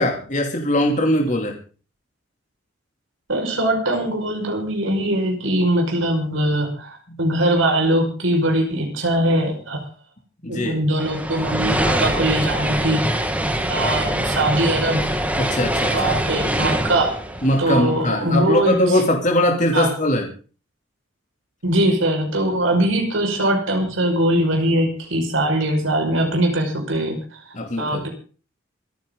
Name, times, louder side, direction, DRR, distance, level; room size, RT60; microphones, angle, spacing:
voice 1, 0.0-1.6 7.1-7.2 10.4-10.8 13.4-13.8 15.4-16.1 17.4-20.3 27.5-28.0, left 1 dB, 40° left, 1 dB, 3.0 m, -21 dB
voice 2, 3.3-9.8 10.5-13.0 13.7-15.2 15.9-17.1 17.6-18.7 19.7-19.9 21.6-27.2 27.8-28.1, right 1 dB, 85° right, 1 dB, 5.6 m, -21 dB
sound 1, 11.0-18.4, right 1 dB, 5° right, 1.7 m, -24 dB
26.5 x 10.5 x 3.9 m, 0.39 s
head